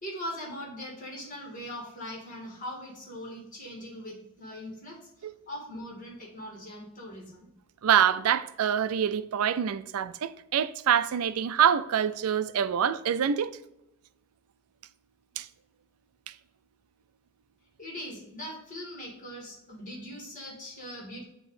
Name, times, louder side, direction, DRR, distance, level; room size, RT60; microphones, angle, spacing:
voice 1, 0.0-7.5 17.8-21.2, equal, 35° left, 2.0 m, -41 dB
voice 2, 7.8-13.5 15.4-15.5, right 8 dB, 85° right, 0.4 m, -25 dB
8.0 x 2.9 x 4.8 m
head